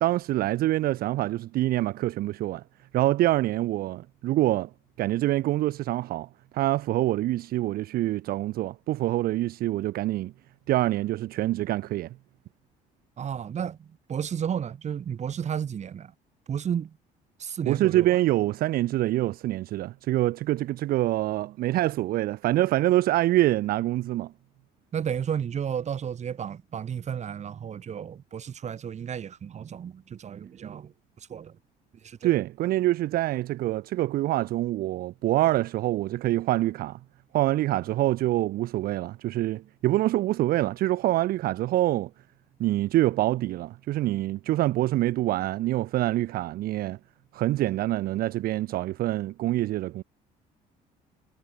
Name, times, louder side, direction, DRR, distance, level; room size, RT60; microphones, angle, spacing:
voice 1, 0.0-2.6 2.9-4.7 5.0-10.3 10.7-12.2 17.6-24.3 32.2-37.0 37.3-42.1 42.6-47.0 47.3-50.0, right 15 dB, 60° right, 0.5 m, -25 dB
voice 2, 13.2-16.1 16.5-16.9 17.4-18.2 24.9-30.9 31.3-31.5 32.0-32.3, right 8 dB, 45° right, 1.9 m, -32 dB
cardioid pair, 110°, 17 cm